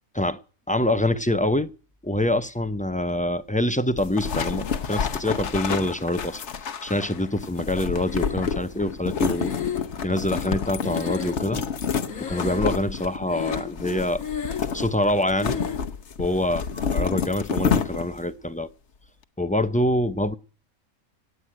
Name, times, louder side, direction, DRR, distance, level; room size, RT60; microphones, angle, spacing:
voice 1, 0.7-1.7 2.0-6.4 6.8-9.5 10.0-11.6 12.2-14.2 14.7-15.6 16.2-16.7 16.9-18.7 19.4-20.3, left 1 dB, 10° left, 0.4 m, -25 dB
sound 1, 4.0-18.3, left 6 dB, 55° left, 1.2 m, -29 dB
Breathing, 8.0-8.8 9.3-11.8 12.1-12.9 13.3-13.9 14.1-14.8 15.4-15.9, left 8 dB, 85° left, 2.0 m, -33 dB
17.5 x 8.1 x 8.9 m
omnidirectional pair, 1.5 m